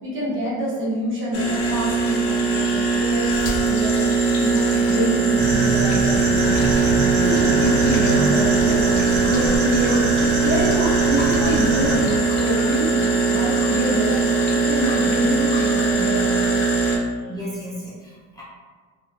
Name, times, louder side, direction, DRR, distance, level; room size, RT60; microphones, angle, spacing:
voice 1, 0.0-6.5 7.2-14.1 14.6-16.6, equal, 35° right, -7 dB, 0.8 m, -27 dB
sound 1, 1.3-17.0, right 3 dB, 60° left, 0.7 m, -20 dB
sound 2, 5.4-12.0, right 3 dB, 75° right, 0.5 m, -25 dB
voice 2, 7.0-7.5 11.4-11.5 17.3-18.4, equal, 10° left, -8 dB, 0.5 m, -34 dB
2.8 x 2.1 x 2.5 m, 1.5 s
cardioid pair, 130°, 34 cm